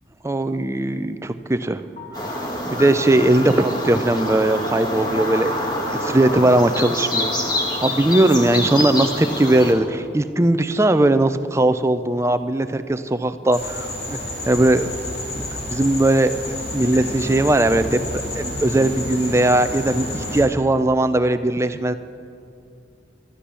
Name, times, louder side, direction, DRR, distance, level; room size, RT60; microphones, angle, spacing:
voice 1, 0.2-1.8 2.3-2.4 2.7-5.5 5.9-14.2 14.5-14.9 15.3-15.4 15.7-21.9, right 1 dB, 15° right, 10 dB, 0.5 m, -19 dB
sound 1, 2.0-10.8, left 1 dB, 45° left, 2.8 m, -38 dB
sound 2, 2.1-9.7, left 1 dB, 25° left, 1.8 m, -26 dB
sound 3, 13.5-20.4, left 1 dB, 60° left, 3.3 m, -30 dB
12.5 x 11.5 x 7.0 m, 2.5 s
head